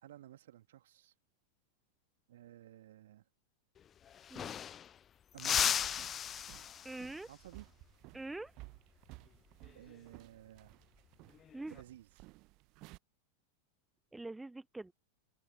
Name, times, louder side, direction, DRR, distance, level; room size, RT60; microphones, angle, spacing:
voice 1, 0.0-1.1 2.3-3.2 5.3-5.8 7.3-7.7 9.7-10.8 11.7-12.1, right 13 dB, 60° right, 2.7 m, -54 dB
sound 1, 3.8-3.9 4.1-5.0 5.4-7.1 9.6-9.9 11.3-11.8, left 9 dB, 25° left, 0.3 m, -35 dB
sound 2, 5.4-13.0, right 23 dB, 40° right, 0.9 m, -55 dB
voice 2, 6.8-7.3 8.1-8.5 11.5-11.8 14.1-14.9, right 2 dB, 5° right, 0.8 m, -44 dB
open air
figure-of-eight pair, 90°, 0 cm